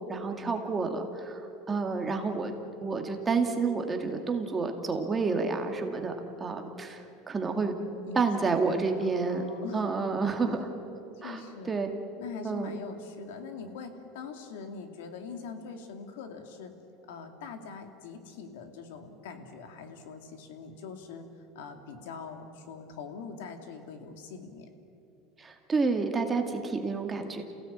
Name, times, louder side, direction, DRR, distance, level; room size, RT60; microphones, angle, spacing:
voice 1, 0.1-1.4 1.7-2.5 2.8-7.0 7.3-7.7 8.1-9.4 9.7-10.7 11.2-11.4 11.7-11.9 12.4-12.7 25.4-27.4, right 4 dB, 20° right, 4 dB, 2.1 m, -29 dB
voice 2, 8.1-9.9 10.4-10.6 11.2-11.9 12.2-16.7 17.1-21.3 21.5-24.7, left 5 dB, 90° left, 6 dB, 2.6 m, -43 dB
28.0 x 16.5 x 8.7 m, 2.8 s
supercardioid pair, 145°, 0 cm